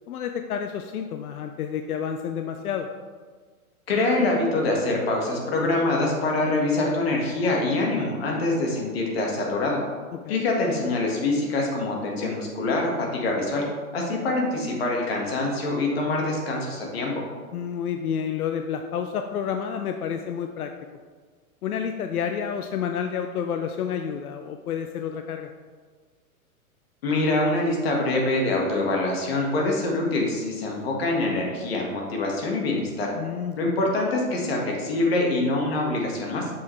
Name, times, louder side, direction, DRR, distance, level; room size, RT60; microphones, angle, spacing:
voice 1, 0.1-2.9 10.1-10.4 17.5-20.7 21.6-25.5 33.1-33.7, left 8 dB, 80° left, 6 dB, 0.6 m, -30 dB
voice 2, 3.9-9.8 10.3-13.6 13.9-17.2 27.0-33.1 33.6-36.5, left 2 dB, 45° left, -1 dB, 1.5 m, -25 dB
7.0 x 5.7 x 3.1 m, 1.5 s
hypercardioid pair, 175°, 44 cm